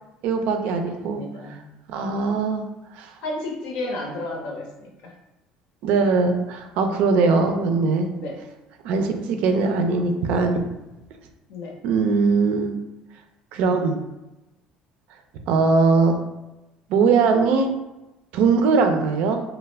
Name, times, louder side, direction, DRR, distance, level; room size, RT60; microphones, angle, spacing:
voice 1, 0.2-1.2 1.9-2.6 2.9-3.1 5.8-8.1 8.8-10.6 11.8-12.8 13.5-14.0 15.5-16.2 16.9-17.7 18.3-19.4, right 4 dB, 70° right, 6 dB, 0.4 m, -20 dB
voice 2, 0.9-1.6 2.1-2.2 3.2-5.1 8.1-8.4 11.5-11.8, left 2 dB, 75° left, 0 dB, 0.7 m, -33 dB
2.3 x 2.0 x 3.2 m, 0.99 s
supercardioid pair, 85°, 2 cm